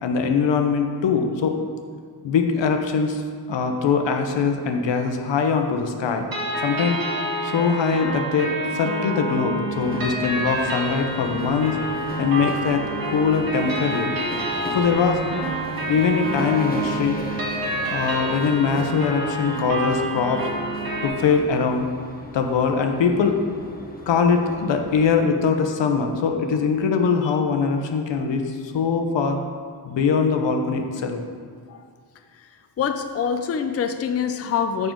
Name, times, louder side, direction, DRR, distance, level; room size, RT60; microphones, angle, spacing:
voice 1, 0.0-1.6 2.2-3.2 3.5-6.3 6.6-7.0 7.4-11.8 12.2-14.1 14.7-15.2 15.9-17.2 17.9-20.5 21.0-21.9 22.3-23.4 24.1-29.4 29.8-31.2, left 5 dB, 90° left, 5 dB, 0.9 m, -22 dB
sound 1, 6.3-21.1, right 1 dB, 55° right, 1.8 m, -28 dB
sound 2, 9.7-25.1, left 1 dB, 20° left, 0.9 m, -37 dB
voice 2, 32.8-34.9, left 7 dB, 35° left, 7 dB, 0.4 m, -25 dB
7.2 x 6.5 x 3.8 m, 2.1 s
wide cardioid pair, 135°, 42 cm